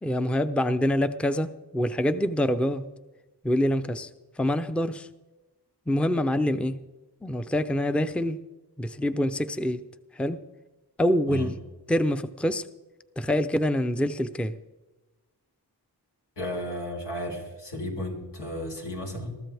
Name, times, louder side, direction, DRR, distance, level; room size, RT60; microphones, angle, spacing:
voice 1, 0.0-2.9 3.4-4.1 4.4-5.1 5.9-6.8 7.2-8.4 8.8-9.8 10.1-10.4 11.0-11.5 11.9-12.6 13.2-14.6, left 1 dB, 5° left, 11 dB, 0.6 m, -25 dB
voice 2, 16.4-19.3, left 1 dB, 90° left, -1 dB, 4.1 m, -33 dB
22.0 x 13.5 x 3.5 m, 1.1 s
wide cardioid pair, 65°, 41 cm